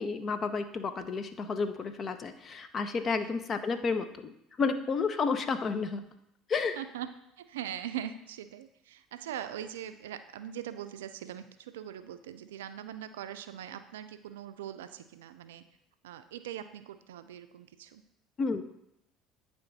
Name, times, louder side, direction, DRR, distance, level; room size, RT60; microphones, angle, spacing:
voice 1, 0.0-4.3 4.6-6.0 6.5-6.8 18.4-18.6, left 4 dB, 40° left, 9 dB, 0.7 m, -31 dB
voice 2, 6.8-7.1 7.4-15.6 16.0-18.0, right 10 dB, 85° right, 11 dB, 0.3 m, -41 dB
9.2 x 3.5 x 4.0 m, 0.82 s
hypercardioid pair, 65°, 0 cm